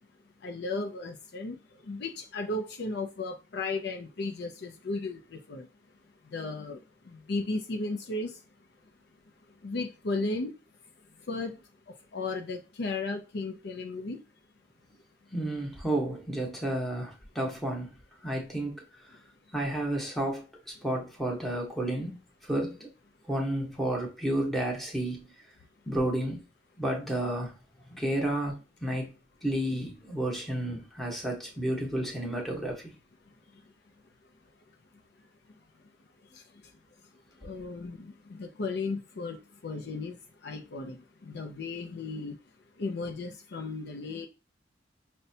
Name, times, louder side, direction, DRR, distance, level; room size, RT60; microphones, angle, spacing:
voice 1, 0.4-1.5 1.9-5.7 6.3-6.8 7.1-8.3 9.6-10.5 11.3-11.5 12.1-14.2 37.4-40.2 40.4-41.0 41.3-42.4 42.8-44.3, left 3 dB, 65° left, 0.5 m, -35 dB
voice 2, 15.3-17.9 18.2-19.1 19.5-20.4 20.8-22.9 23.3-25.2 25.9-26.5 26.8-27.5 27.9-28.6 28.8-29.1 29.4-33.0, right 1 dB, ahead, 0.9 m, -31 dB
5.3 x 2.2 x 2.7 m
head